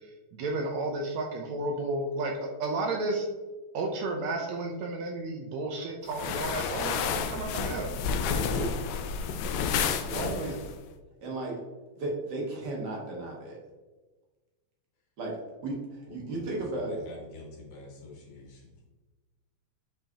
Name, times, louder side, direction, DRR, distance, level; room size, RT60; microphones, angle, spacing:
voice 1, 0.0-3.3 3.7-7.9 10.1-10.5, right 2 dB, 75° right, 2 dB, 1.9 m, -32 dB
sound 1, 6.1-10.7, left 6 dB, 80° left, 1.8 m, -30 dB
voice 2, 8.2-8.7 10.0-10.2 11.2-11.6 11.9-13.6 15.2-15.4 15.6-17.0, right 2 dB, 45° right, -2 dB, 1.6 m, -35 dB
voice 3, 16.1-18.9, left 3 dB, 60° left, -2 dB, 2.7 m, -47 dB
7.0 x 5.5 x 2.9 m, 1.2 s
omnidirectional pair, 3.5 m